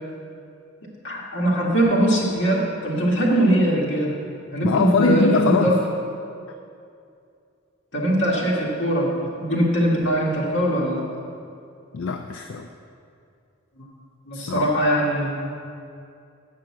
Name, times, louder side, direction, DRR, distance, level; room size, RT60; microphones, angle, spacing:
voice 1, 1.0-4.2 4.5-5.7 7.9-11.0 14.3-15.3, right 1 dB, 65° left, -4 dB, 2.0 m, -21 dB
voice 2, 4.6-5.8 11.9-12.7 14.3-14.7, left 5 dB, 80° left, 4 dB, 0.4 m, -22 dB
7.6 x 5.7 x 7.2 m, 2.5 s
head